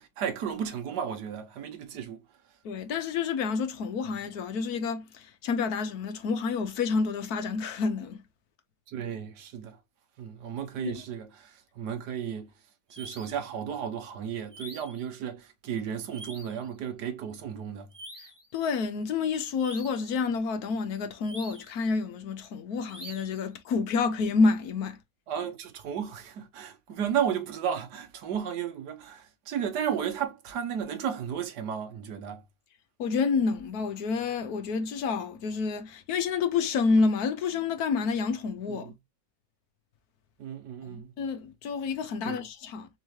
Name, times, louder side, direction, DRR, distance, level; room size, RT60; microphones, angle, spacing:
voice 1, 0.0-2.2 8.9-9.8 10.2-12.5 12.9-17.9 25.3-32.4 38.7-38.9 40.4-41.1 42.2-42.4, right 8 dB, 65° right, 1.5 m, -34 dB
voice 2, 2.6-8.2 10.8-10.9 18.5-25.0 33.0-38.9 40.9-42.9, left 4 dB, 60° left, 1.2 m, -28 dB
sound 1, 12.9-13.5 14.5-15.1 16.1-16.6 17.9-18.5 19.6-20.1 21.2-21.8 22.9-23.4, right 1 dB, 15° right, 1.5 m, -46 dB
4.4 x 3.1 x 3.0 m
omnidirectional pair, 2.0 m